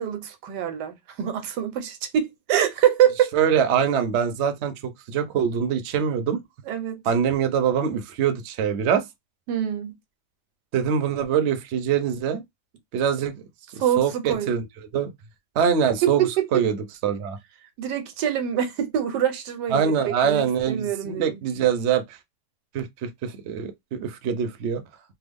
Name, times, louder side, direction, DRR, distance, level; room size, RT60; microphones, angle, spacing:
voice 1, 0.0-3.3 6.7-7.0 9.5-9.9 13.8-14.6 16.0-16.5 17.8-21.4, right 10 dB, 85° right, 1.3 m, -25 dB
voice 2, 3.3-4.7 5.1-6.4 7.1-9.0 10.7-12.4 12.9-13.4 14.0-14.6 14.9-15.1 15.6-16.8 17.0-17.4 19.7-22.2 22.7-24.8, right 7 dB, 60° right, 0.7 m, -23 dB
3.4 x 2.0 x 3.4 m
omnidirectional pair, 1.7 m